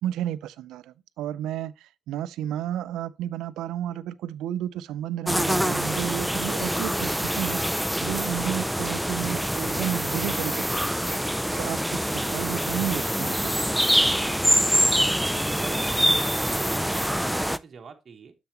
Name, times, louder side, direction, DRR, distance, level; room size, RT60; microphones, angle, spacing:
voice 1, 0.0-13.5, right 11 dB, 85° right, 0.4 m, -32 dB
sound 1, 5.3-17.6, equal, ahead, 0.3 m, -25 dB
voice 2, 14.3-15.1 15.6-18.3, right 5 dB, 45° right, 1.0 m, -43 dB
6.9 x 6.9 x 2.9 m
cardioid pair, 90°, 0 cm